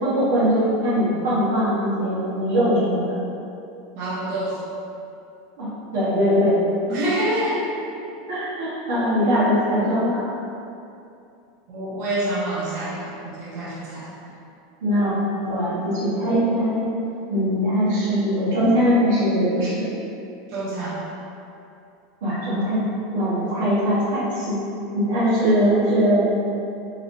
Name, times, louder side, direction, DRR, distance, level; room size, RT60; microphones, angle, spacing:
voice 1, 0.0-3.2 5.6-6.7 8.3-10.3 14.8-15.1 15.4-16.9 17.3-19.9 22.2-22.8 23.1-24.6 24.9-26.3, equal, 80° right, -10 dB, 1.1 m, -21 dB
voice 2, 3.9-4.6 6.9-7.6 11.7-14.3 20.5-21.0, right 1 dB, 60° right, -8 dB, 1.3 m, -27 dB
4.7 x 3.0 x 2.6 m, 2.6 s
hypercardioid pair, 105°, 0 cm